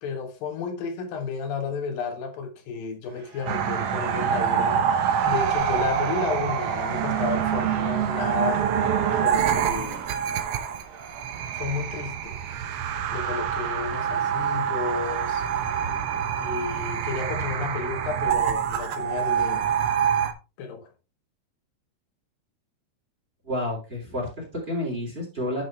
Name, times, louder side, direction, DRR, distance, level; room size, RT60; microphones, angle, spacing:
voice 1, 0.0-8.7 9.2-10.1 11.5-12.4 13.1-15.4 16.4-19.7 20.6-20.9, left 5 dB, 90° left, 3.4 m, -32 dB
Shout / Cheering, 3.0-12.0, right 5 dB, 45° right, 2.1 m, -37 dB
sound 1, 3.5-20.3, right 8 dB, 75° right, 1.4 m, -26 dB
voice 2, 23.4-25.6, left 1 dB, 15° right, 3.4 m, -30 dB
10.5 x 6.2 x 3.3 m
omnidirectional pair, 3.9 m